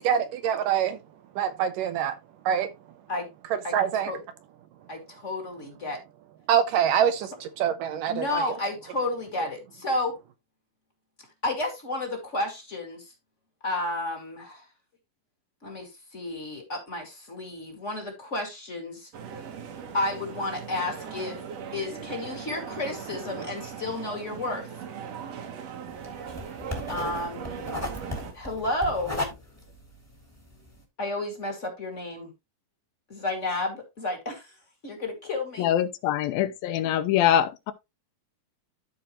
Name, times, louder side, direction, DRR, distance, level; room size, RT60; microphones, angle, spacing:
voice 1, 0.0-1.0 1.4-2.2 2.5-2.7 3.7-4.1 6.5-8.4, right 9 dB, 75° right, 2.2 m, -25 dB
voice 2, 4.9-6.0 8.1-10.2 11.4-13.1 13.6-14.7 15.6-19.1 19.9-21.4 21.7-24.7 26.9-27.5 28.3-29.3 31.0-32.3 33.1-34.5 34.8-35.7, left 2 dB, 25° left, 1.8 m, -31 dB
sound 1, 19.1-28.3, right 6 dB, 60° right, 2.0 m, -39 dB
sound 2, 25.9-30.8, left 1 dB, 5° left, 1.5 m, -36 dB
voice 3, 35.6-37.7, left 11 dB, 85° left, 2.5 m, -24 dB
13.5 x 4.6 x 3.0 m
omnidirectional pair, 4.2 m